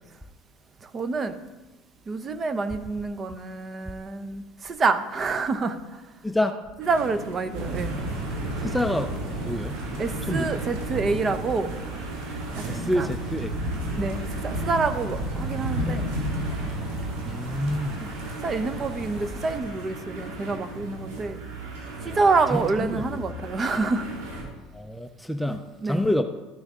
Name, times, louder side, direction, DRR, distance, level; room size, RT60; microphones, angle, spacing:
voice 1, 0.8-1.4 2.1-6.0 6.8-8.0 10.0-11.7 12.5-12.6 12.9-13.1 14.0-16.1 18.0-18.1 18.4-21.4 22.0-24.1 25.5-26.0, right 4 dB, 30° right, 10 dB, 0.7 m, -27 dB
sound 1, 6.8-24.4, right 2 dB, 90° right, 2.4 m, -39 dB
sound 2, 7.5-19.6, right 1 dB, 65° right, 2.4 m, -32 dB
voice 2, 8.6-9.1 9.4-10.0 10.3-10.5 12.7-13.5 17.2-18.0 22.0-22.2 22.5-23.2 24.7-26.2, left 1 dB, ahead, 6 dB, 0.5 m, -27 dB
13.0 x 6.3 x 3.7 m, 1.1 s
supercardioid pair, 115°, 0 cm